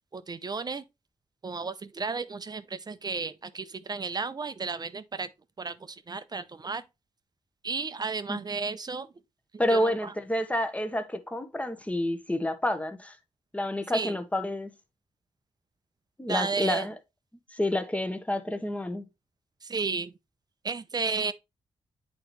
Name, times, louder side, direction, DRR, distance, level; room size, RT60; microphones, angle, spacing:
voice 1, 0.1-0.8 1.4-5.3 5.6-6.8 7.6-9.1 9.7-10.1 13.9-14.1 16.3-16.9 19.6-20.1 20.6-21.3, right 4 dB, 35° right, 0.6 m, -33 dB
voice 2, 9.6-13.2 13.5-14.7 16.2-16.9 17.5-19.0, left 1 dB, 10° left, 1.0 m, -29 dB
8.5 x 4.0 x 3.1 m
cardioid pair, 80°, 11 cm